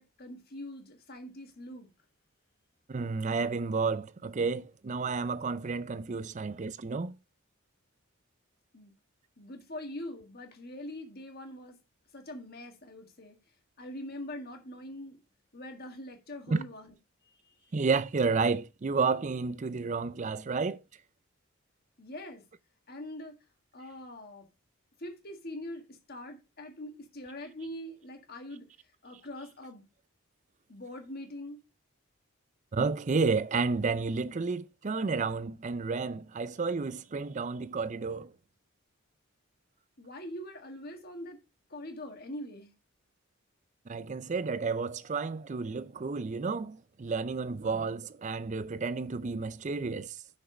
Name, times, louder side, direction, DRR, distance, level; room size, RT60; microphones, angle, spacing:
voice 1, 0.0-1.9 8.7-8.9 9.4-11.7 12.1-13.4 13.8-15.2 15.5-16.9 17.5-17.7 22.0-22.4 22.9-23.4 23.7-24.5 25.0-28.7 29.0-29.8 30.7-31.6 40.0-41.4 41.7-42.7, left 1 dB, 45° left, 1.7 m, -43 dB
voice 2, 2.9-7.2 16.5-16.6 17.7-20.8 32.7-38.3 43.9-50.2, right 4 dB, 35° right, 0.4 m, -31 dB
6.2 x 5.4 x 6.0 m
head